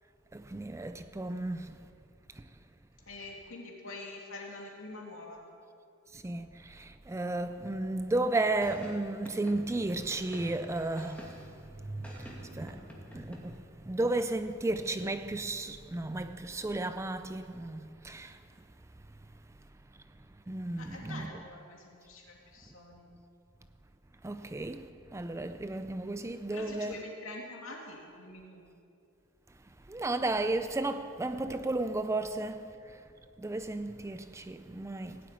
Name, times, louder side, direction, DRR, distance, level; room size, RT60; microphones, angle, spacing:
voice 1, 0.3-1.7 6.1-11.3 11.9-12.8 13.1-13.5 13.9-18.4 20.5-21.3 24.2-27.0 29.9-32.7 33.4-35.2, right 2 dB, 15° right, 0.4 m, -33 dB
voice 2, 3.1-5.4 20.7-23.1 26.5-28.6, left 2 dB, 65° left, 2.8 m, -45 dB
sound 1, 8.6-11.6 12.0-13.4, equal, 5° left, 2.2 m, -48 dB
17.5 x 7.9 x 9.3 m
head